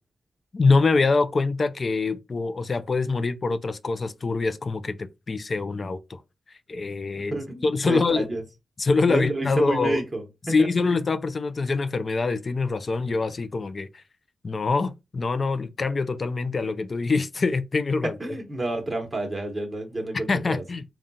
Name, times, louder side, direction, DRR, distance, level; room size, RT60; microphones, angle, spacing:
voice 1, 0.5-6.2 6.7-8.3 8.8-10.0 10.5-14.0 14.4-18.2 20.1-20.8, left 4 dB, 45° left, 0.4 m, -24 dB
voice 2, 7.3-8.4 9.1-10.2 10.6-10.7 18.2-20.6, right 2 dB, 20° right, 1.1 m, -29 dB
3.7 x 2.3 x 4.0 m
cardioid pair, 75°, 0 cm